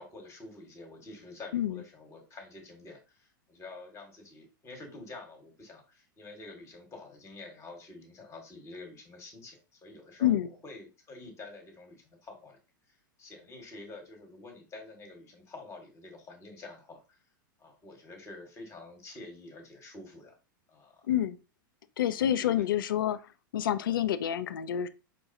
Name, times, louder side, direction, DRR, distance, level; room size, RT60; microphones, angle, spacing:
voice 1, 0.0-12.6 12.9-17.2 17.6-20.4 20.7-21.1 22.1-23.0, left 2 dB, 25° left, 1.4 m, -48 dB
voice 2, 22.0-23.2 23.5-24.9, left 11 dB, 75° left, 0.4 m, -27 dB
5.2 x 2.3 x 2.6 m
hypercardioid pair, 100°, 11 cm